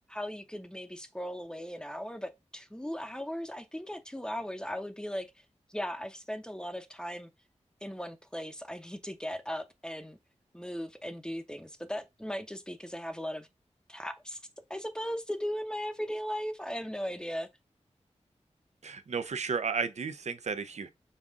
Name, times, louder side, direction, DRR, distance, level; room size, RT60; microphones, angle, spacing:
voice 1, 0.1-5.3 5.7-7.3 7.8-10.2 10.5-13.5 13.9-14.4 14.7-17.5, equal, 5° left, 0.8 m, -37 dB
voice 2, 18.8-20.9, right 5 dB, 70° right, 0.6 m, -33 dB
5.5 x 2.4 x 3.5 m
wide cardioid pair, 60°, 12 cm